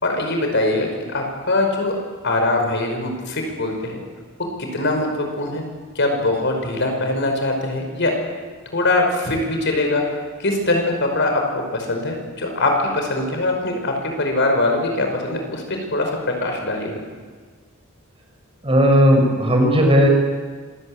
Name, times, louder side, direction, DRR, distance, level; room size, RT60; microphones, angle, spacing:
voice 1, 0.0-2.0 2.2-4.0 4.6-5.6 6.0-8.2 8.7-10.0 10.4-16.1 16.4-16.9, left 2 dB, 60° left, 3 dB, 5.5 m, -22 dB
voice 2, 18.6-20.1, equal, 25° right, 2 dB, 5.4 m, -15 dB
26.5 x 19.5 x 8.9 m, 1.5 s
head